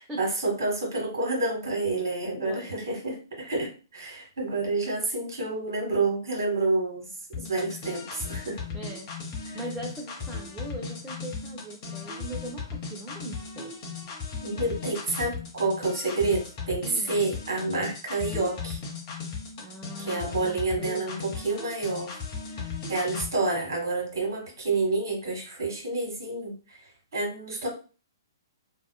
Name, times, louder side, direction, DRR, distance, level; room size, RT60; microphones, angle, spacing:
voice 1, 0.2-8.6 9.5-9.6 14.4-18.8 20.0-22.2 22.9-26.8 27.1-27.7, right 3 dB, 70° right, 0 dB, 1.3 m, -29 dB
voice 2, 2.4-2.8 8.7-9.1 9.5-14.0 16.8-17.2 19.6-21.3, right 1 dB, 10° right, -2 dB, 0.5 m, -40 dB
sound 1, 7.3-23.3, left 5 dB, 35° left, 0.8 m, -37 dB
2.8 x 2.2 x 2.2 m, 0.36 s
figure-of-eight pair, 125°, 2 cm